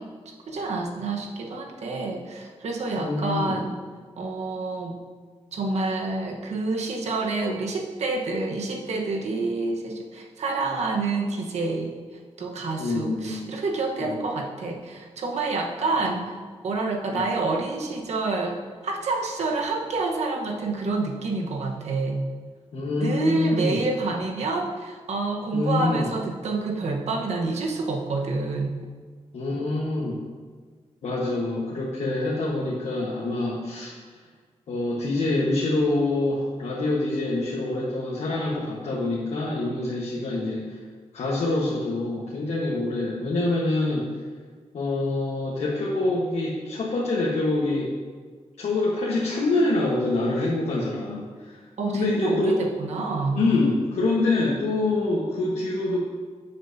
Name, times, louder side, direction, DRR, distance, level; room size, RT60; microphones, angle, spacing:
voice 1, 0.0-3.8 4.2-5.0 5.5-12.0 12.4-16.4 16.6-22.2 23.0-28.8 51.8-53.4, right 3 dB, 80° right, 1 dB, 1.2 m, -28 dB
voice 2, 3.0-3.6 12.8-13.4 14.1-14.3 16.1-16.2 17.1-17.3 22.7-23.8 25.5-26.1 29.3-30.2 31.0-33.9 34.7-40.8 41.1-44.1 44.7-47.9 48.6-51.6 51.9-52.6 53.3-56.0, left 2 dB, 75° left, -5 dB, 1.3 m, -25 dB
12.5 x 7.4 x 2.8 m, 1.5 s
wide cardioid pair, 135°, 11 cm